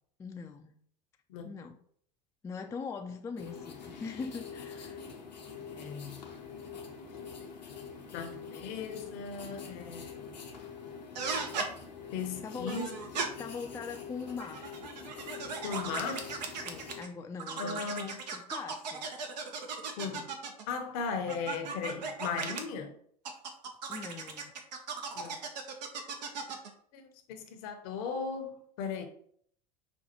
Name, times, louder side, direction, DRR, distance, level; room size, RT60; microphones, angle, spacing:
voice 1, 0.2-0.7 1.4-1.8 2.4-5.0 10.0-10.1 12.4-12.8 13.4-14.7 16.6-19.1 23.9-24.6, left 5 dB, 15° left, 0.3 m, -42 dB
sound 1, 3.4-17.0, left 6 dB, 90° left, 0.8 m, -45 dB
voice 2, 5.7-6.2 7.4-7.5 8.1-10.4 12.1-12.9 15.6-16.3 17.6-18.2 20.0-20.3 20.7-22.9 25.1-25.4 26.9-29.1, left 5 dB, 60° left, 0.7 m, -37 dB
sound 2, 11.1-11.7 12.7-13.3 14.3-17.1 17.4-20.7 21.3-22.6 23.2-26.7, right 5 dB, 75° right, 0.6 m, -37 dB
5.2 x 2.3 x 2.9 m
hypercardioid pair, 80°, 21 cm